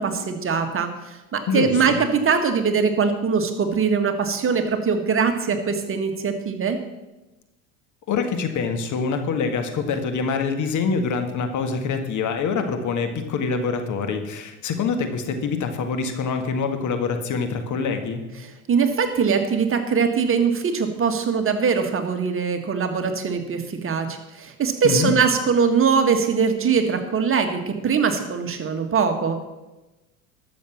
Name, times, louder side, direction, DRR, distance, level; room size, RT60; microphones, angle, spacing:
voice 1, 0.0-6.8 18.7-29.4, right 6 dB, 30° right, 6 dB, 1.7 m, -22 dB
voice 2, 1.5-2.0 8.1-18.2 24.8-25.1, left 5 dB, 45° left, 6 dB, 1.8 m, -25 dB
12.5 x 7.1 x 7.3 m, 1.1 s
hypercardioid pair, 85°, 42 cm